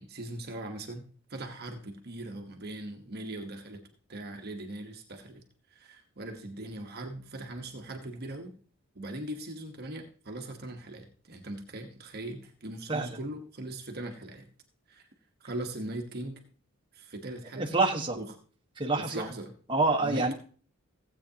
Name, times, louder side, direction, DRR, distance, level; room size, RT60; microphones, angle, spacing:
voice 1, 0.0-3.8 4.1-5.4 5.7-8.5 8.9-14.5 14.9-15.0 15.4-16.4 16.9-17.8 18.1-18.3 19.0-19.6 20.0-20.3, right 1 dB, 50° right, 4 dB, 1.2 m, -40 dB
voice 2, 17.6-18.2 18.8-19.3 19.7-20.3, right 3 dB, 25° right, 0 dB, 1.3 m, -27 dB
15.5 x 8.2 x 2.8 m, 0.41 s
head